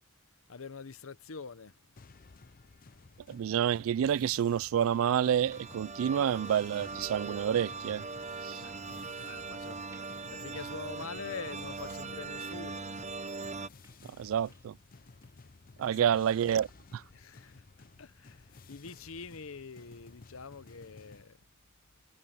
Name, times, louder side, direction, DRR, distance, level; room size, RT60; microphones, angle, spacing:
voice 1, 0.5-1.9 8.2-10.0 10.3-12.9 15.9-16.2 17.1-17.6 18.0-21.4, left 5 dB, 75° left, 0.8 m, -45 dB
sound 1, 2.0-21.2, left 3 dB, 40° left, 0.6 m, -55 dB
voice 2, 3.3-8.0 8.4-8.6 14.2-14.7 15.8-16.7 16.9-17.0, right 9 dB, 70° right, 0.3 m, -28 dB
sound 2, 4.9-13.7, right 4 dB, 35° right, 0.8 m, -41 dB
sound 3, 7.4-14.9 15.2-15.5 15.9-16.1 16.5-16.6 17.2-17.3, right 2 dB, 15° right, 2.3 m, -66 dB
head